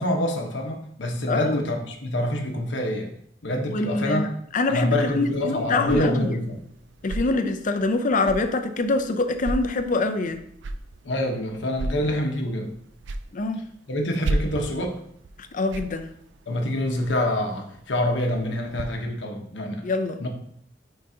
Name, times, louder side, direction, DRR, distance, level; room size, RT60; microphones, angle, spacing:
voice 1, 0.0-3.1 3.4-4.3 4.7-6.6 11.0-12.7 13.9-15.0 16.5-19.8 20.2-20.3, left 1 dB, 70° left, 2 dB, 1.1 m, -26 dB
voice 2, 1.3-1.6 3.7-4.3 4.5-6.3 7.0-10.4 13.3-13.6 15.5-16.1 19.8-20.2, left 3 dB, 45° left, 8 dB, 0.6 m, -24 dB
sound 1, 4.8-18.8, right 2 dB, 70° right, 0.4 m, -36 dB
9.2 x 3.9 x 2.8 m, 0.70 s
head